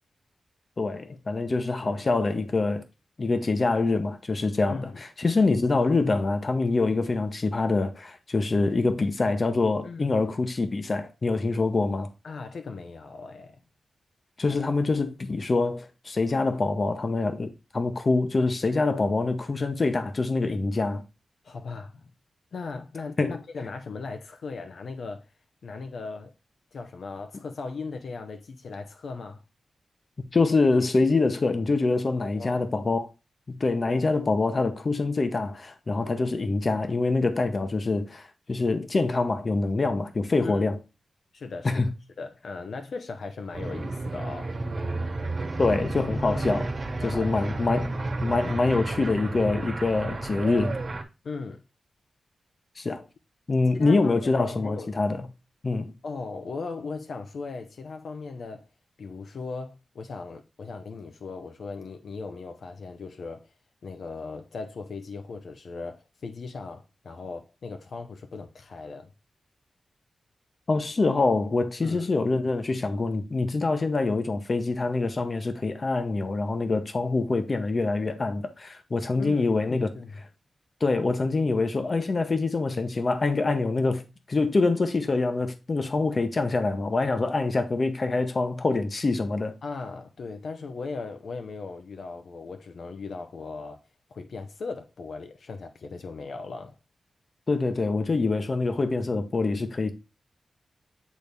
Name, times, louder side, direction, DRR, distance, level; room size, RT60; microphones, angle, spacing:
voice 1, 0.8-2.8 3.2-12.1 14.4-21.0 23.2-23.4 30.3-33.1 33.5-40.8 41.6-41.9 45.6-46.7 47.0-47.9 48.2-50.8 52.8-53.0 53.5-55.3 55.6-55.9 70.7-79.9 80.8-89.5 97.5-99.9, left 3 dB, 40° left, 0.9 m, -25 dB
voice 2, 4.7-5.0 9.8-10.2 12.2-13.6 21.4-22.1 22.5-25.3 25.6-26.3 26.7-29.4 32.2-32.7 40.4-40.6 41.3-41.8 42.2-44.6 46.2-46.4 47.0-47.8 51.2-51.6 53.7-54.9 56.0-58.7 59.0-63.5 63.8-69.1 71.8-72.1 79.2-80.1 89.6-93.8 94.1-96.8, left 4 dB, 70° left, 0.8 m, -38 dB
sound 1, 43.5-51.0, right 2 dB, 45° right, 1.6 m, -31 dB
8.4 x 4.0 x 3.5 m
wide cardioid pair, 120°, 0 cm